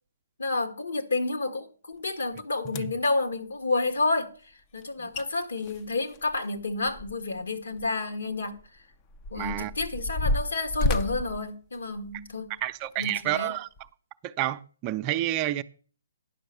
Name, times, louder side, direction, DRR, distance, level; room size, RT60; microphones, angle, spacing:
voice 1, 0.4-4.3 4.7-8.6 9.3-12.5 13.0-13.5, left 3 dB, 75° left, 1.8 m, -30 dB
sound 1, 2.2-2.3 2.7-3.1 4.8-4.9 5.1-5.3 5.6-7.4 7.7-7.9 8.6-12.3 12.9-13.1 13.8-13.9, left 2 dB, 25° left, 0.6 m, -31 dB
voice 2, 9.4-9.7 12.6-13.7 14.2-15.6, right 14 dB, 30° right, 0.5 m, -29 dB
10.5 x 6.0 x 6.6 m
figure-of-eight pair, 140°, 0 cm